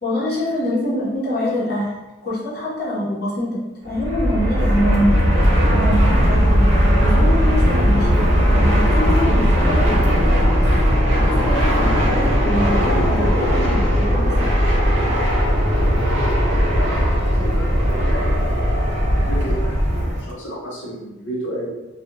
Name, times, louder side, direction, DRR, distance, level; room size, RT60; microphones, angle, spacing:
voice 1, 0.0-1.9 2.2-5.2 5.7-6.7 7.0-10.6 11.1-14.7, left 1 dB, 50° left, -7 dB, 0.9 m, -25 dB
Fixed-wing aircraft airplane, 3.9-20.3, equal, 80° right, 0.9 m, -17 dB
voice 2, 16.5-18.7 19.0-21.7, equal, 80° left, -6 dB, 0.8 m, -32 dB
2.4 x 2.3 x 2.9 m, 1.0 s
head